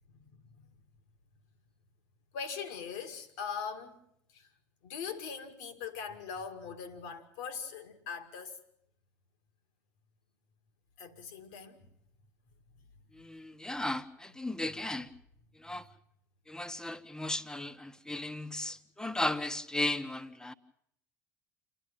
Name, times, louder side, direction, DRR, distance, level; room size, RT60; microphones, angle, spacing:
voice 1, 0.1-0.7 2.3-4.0 4.3-4.5 4.8-8.6 11.0-11.9 12.8-12.9 13.7-13.8, left 6 dB, 65° left, 2.1 m, -41 dB
voice 2, 13.1-15.1 15.6-15.8 16.5-20.5, left 1 dB, 5° left, 1.1 m, -35 dB
28.5 x 11.0 x 9.0 m
figure-of-eight pair, 65°, 9 cm